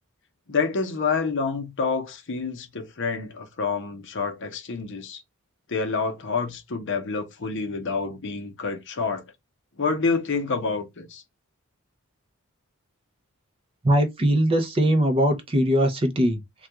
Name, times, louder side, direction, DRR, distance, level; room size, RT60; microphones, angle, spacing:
voice 1, 0.5-5.2 5.7-9.2 9.8-11.2, left 4 dB, 55° left, 0.7 m, -28 dB
voice 2, 13.8-16.7, equal, 25° right, 0.5 m, -21 dB
2.3 x 2.3 x 2.8 m
head